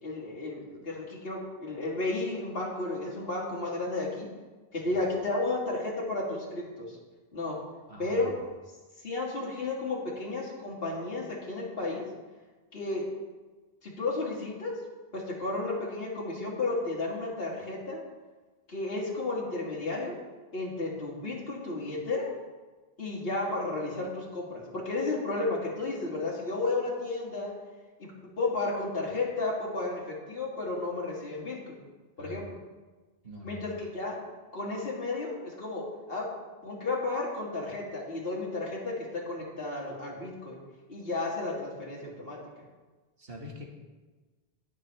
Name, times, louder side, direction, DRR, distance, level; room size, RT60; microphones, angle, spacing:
voice 1, 0.0-4.3 4.7-7.0 7.3-7.6 8.0-8.3 9.0-12.1 12.7-13.1 13.8-14.7 15.1-18.0 18.7-20.2 20.5-22.3 23.0-27.5 28.4-31.8 32.2-32.4 33.4-34.2 34.5-36.3 36.6-40.6 40.9-42.4, left 2 dB, 65° left, -4 dB, 2.4 m, -33 dB
voice 2, 7.9-8.3 32.2-32.4 33.2-33.7 43.2-43.7, left 1 dB, 65° right, 0 dB, 2.0 m, -44 dB
20.0 x 6.7 x 3.4 m, 1.3 s
omnidirectional pair, 1.1 m